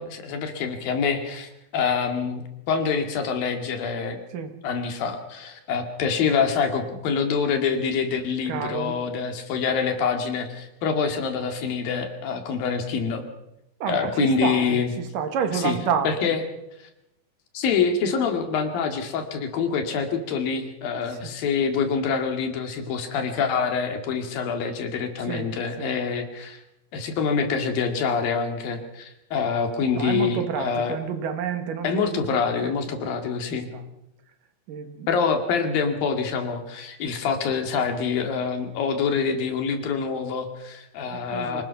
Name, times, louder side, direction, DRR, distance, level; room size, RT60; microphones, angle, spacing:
voice 1, 0.0-4.2 4.6-13.3 13.9-14.9 15.5-15.8 16.0-16.4 17.5-26.6 26.9-31.0 31.8-33.7 35.1-41.6, left 6 dB, 90° left, 6 dB, 4.0 m, -26 dB
voice 2, 8.5-9.0 13.8-16.3 20.9-21.3 25.2-25.5 25.8-26.0 29.9-32.7 33.0-33.8 34.7-35.1 41.1-41.6, right 7 dB, 75° right, 8 dB, 3.2 m, -30 dB
25.0 x 19.0 x 5.8 m, 0.88 s
omnidirectional pair, 4.0 m